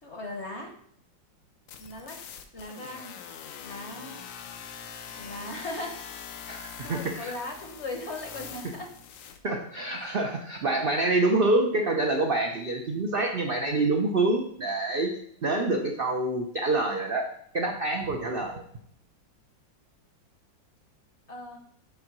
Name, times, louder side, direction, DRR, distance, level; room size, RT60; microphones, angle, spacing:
voice 1, 0.0-0.7 1.8-2.2 2.5-3.2 3.6-4.2 5.1-5.9 6.7-8.9 10.0-10.1 21.3-21.6, left 2 dB, 45° left, 3 dB, 1.0 m, -38 dB
sound 1, 1.7-9.4, left 7 dB, 85° left, 1.5 m, -43 dB
voice 2, 6.5-7.3 9.4-15.1 15.4-17.3 17.5-18.6, right 2 dB, 55° right, 1 dB, 0.6 m, -26 dB
7.2 x 3.8 x 6.0 m, 0.65 s
omnidirectional pair, 2.0 m